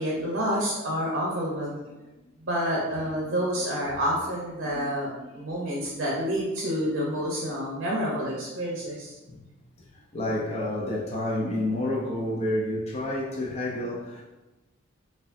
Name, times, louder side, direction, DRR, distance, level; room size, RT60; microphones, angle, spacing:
voice 1, 0.0-1.8 2.4-9.1, equal, 55° right, 0.6 m, -28 dB
voice 2, 3.0-3.7 4.6-5.6 9.3-9.4 9.9-14.2, left 1 dB, 30° left, 0.5 m, -31 dB
4.7 x 2.3 x 2.5 m
head